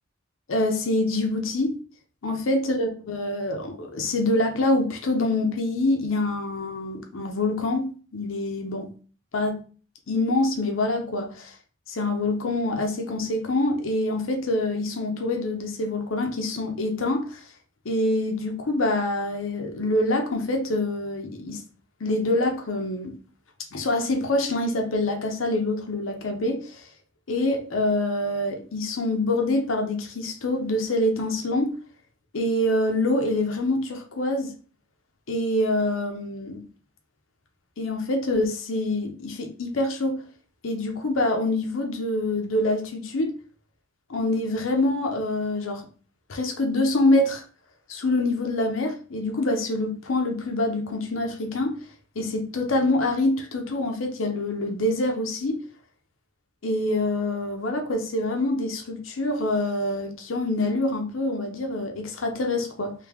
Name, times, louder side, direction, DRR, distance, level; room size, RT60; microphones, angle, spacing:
voice 1, 0.5-1.8 2.2-8.9 9.3-9.6 10.1-11.5 11.9-17.4 17.8-21.6 22.0-23.1 23.7-26.9 27.3-31.7 32.3-34.5 35.3-36.6 37.8-40.2 40.6-43.3 44.1-45.8 46.3-47.4 47.9-51.8 52.2-55.6 56.6-62.9, left 2 dB, 80° left, 0.7 m, -25 dB
3.3 x 2.7 x 3.5 m
head